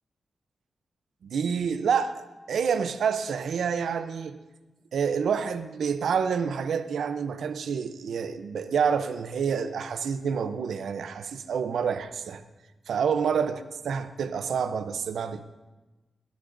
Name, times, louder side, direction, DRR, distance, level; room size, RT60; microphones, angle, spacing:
voice 1, 1.2-2.2 2.5-4.4 4.9-12.4 12.9-13.6 13.8-15.4, right 6 dB, 85° right, 11 dB, 0.6 m, -28 dB
17.5 x 13.5 x 2.6 m, 1.1 s
cardioid pair, 70°, 0 cm